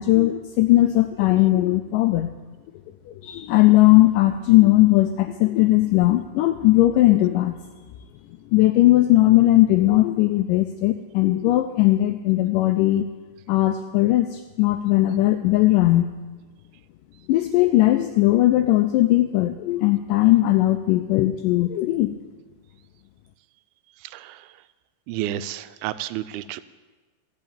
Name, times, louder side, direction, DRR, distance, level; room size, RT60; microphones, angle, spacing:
voice 1, 0.0-2.3 3.2-7.6 8.5-13.1 13.5-16.1 17.3-22.1, left 16 dB, 85° left, 8 dB, 1.9 m, -18 dB
voice 2, 24.1-24.4 25.1-26.6, right 13 dB, 85° right, 14 dB, 2.4 m, -31 dB
13.5 x 5.8 x 8.8 m, 1.3 s
omnidirectional pair, 4.3 m